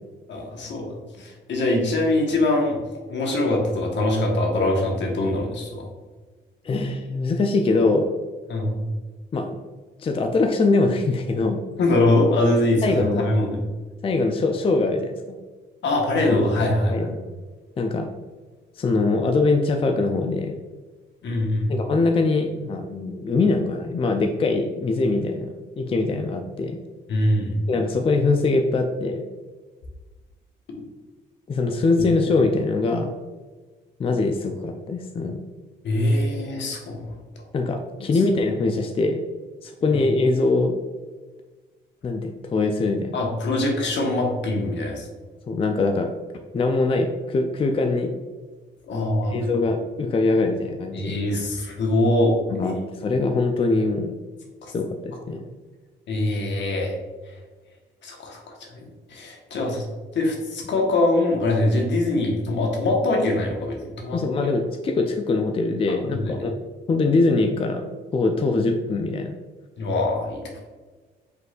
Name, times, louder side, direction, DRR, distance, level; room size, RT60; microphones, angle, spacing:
voice 1, 0.3-2.8 3.1-5.9 8.5-8.8 11.8-13.7 15.8-17.1 21.2-21.7 27.1-27.6 35.8-37.1 39.9-40.0 43.1-45.1 48.9-49.4 50.9-52.3 52.6-52.7 54.6-54.7 56.1-57.0 58.0-58.4 58.7-58.8 59.1-59.8 60.1-64.5 65.9-66.3 69.8-70.4, left 2 dB, 65° left, 0 dB, 1.2 m, -23 dB
voice 2, 6.6-8.2 9.3-9.6 10.0-11.6 12.8-13.3 14.0-15.4 16.3-16.4 16.9-17.2 17.8-18.1 18.7-20.6 21.7-26.8 27.7-29.3 31.5-33.1 34.0-35.4 37.5-39.2 39.6-40.7 42.0-43.2 45.5-46.1 46.5-48.1 49.3-51.2 52.5-54.2 54.7-55.5 64.1-66.5 66.9-69.3, left 3 dB, 30° left, 4 dB, 0.4 m, -23 dB
5.4 x 3.9 x 2.4 m, 1.3 s
cardioid pair, 90°, 20 cm